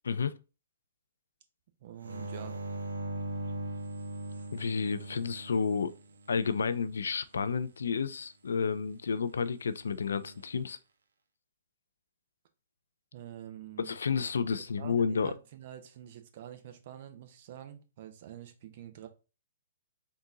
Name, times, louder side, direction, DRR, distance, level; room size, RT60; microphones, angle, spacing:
voice 1, 1.8-2.6 13.1-13.9 14.8-19.1, right 11 dB, 50° right, 0.8 m, -46 dB
sound 1, 2.0-6.6 9.9-10.5, right 1 dB, 80° right, 0.7 m, -40 dB
voice 2, 4.5-5.9 6.3-10.8 13.8-15.3, left 5 dB, 75° left, 0.4 m, -31 dB
3.9 x 2.7 x 3.6 m
figure-of-eight pair, 120°, 0 cm